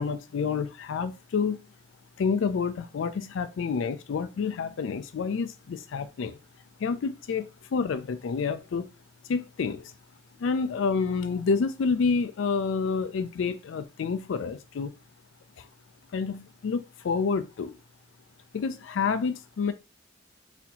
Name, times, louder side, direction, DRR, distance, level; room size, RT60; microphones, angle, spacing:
voice 1, 0.0-1.6 2.2-6.4 6.8-8.9 9.3-9.9 10.4-14.9 15.6-15.7 16.1-17.8 18.5-19.7, left 5 dB, 75° left, 0.4 m, -28 dB
4.2 x 2.7 x 2.8 m
head